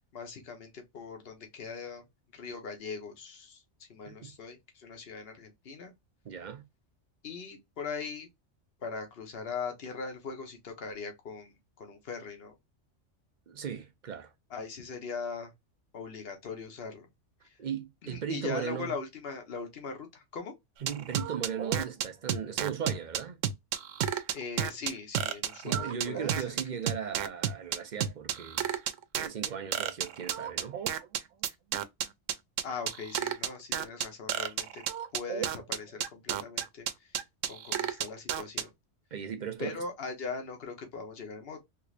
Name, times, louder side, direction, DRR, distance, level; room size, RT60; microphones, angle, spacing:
voice 1, 0.1-2.0 2.3-3.6 3.9-5.9 7.2-8.3 8.8-12.5 14.5-15.5 15.9-17.1 18.0-20.5 24.3-26.4 32.6-34.8 35.1-37.1 37.4-38.7 39.6-41.6, left 5 dB, 55° left, 1.2 m, -40 dB
voice 2, 6.2-6.6 13.5-14.3 17.6-19.0 20.8-23.4 25.6-28.7 29.2-30.8 39.1-39.8, right 8 dB, 50° right, 0.6 m, -37 dB
sound 1, 20.9-38.6, right 10 dB, 90° right, 0.9 m, -31 dB
3.6 x 3.1 x 2.4 m
omnidirectional pair, 1.2 m